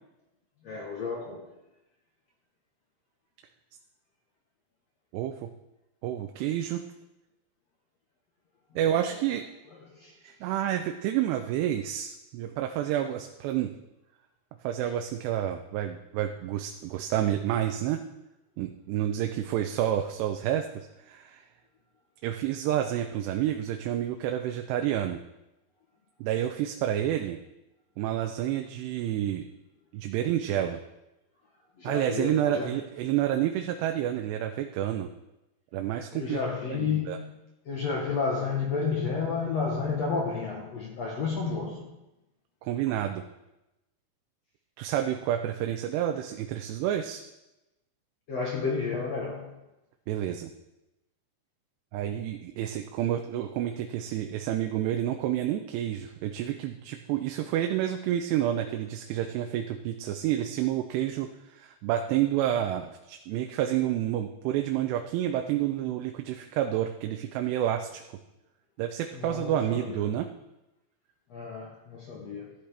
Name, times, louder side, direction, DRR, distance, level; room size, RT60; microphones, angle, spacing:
voice 1, 0.6-1.5 8.8-9.1 9.8-10.2 31.8-32.7 36.1-37.3 37.6-41.9 48.3-49.6 69.1-70.0 71.3-72.5, left 5 dB, 70° left, 1.6 m, -31 dB
voice 2, 5.1-5.5 6.0-6.8 8.8-9.4 10.2-13.7 14.6-18.0 18.6-21.5 22.2-25.2 26.2-27.4 28.0-29.4 29.9-30.8 31.8-35.1 35.7-36.4 36.7-37.2 42.6-43.2 44.8-47.2 50.1-50.5 51.9-68.0 68.8-70.3, right 11 dB, 90° right, 2.8 m, -29 dB
13.5 x 11.5 x 3.4 m
omnidirectional pair, 4.8 m